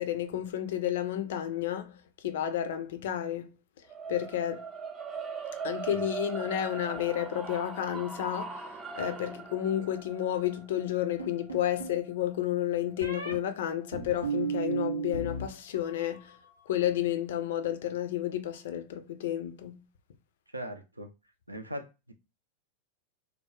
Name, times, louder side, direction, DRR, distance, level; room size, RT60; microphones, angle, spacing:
voice 1, 0.0-2.0 2.2-3.5 4.1-4.6 5.6-8.7 9.0-16.3 16.7-19.8, left 11 dB, 55° left, 0.4 m, -31 dB
sound 1, 3.9-14.1, right 5 dB, 20° right, 0.5 m, -41 dB
sound 2, 11.2-12.0 13.0-13.3 13.9-15.5 15.7-16.3, right 5 dB, 90° left, 0.7 m, -34 dB
voice 2, 20.5-21.1 21.5-22.1, equal, 85° right, 0.5 m, -40 dB
3.4 x 2.0 x 2.9 m
figure-of-eight pair, 90°, 0 cm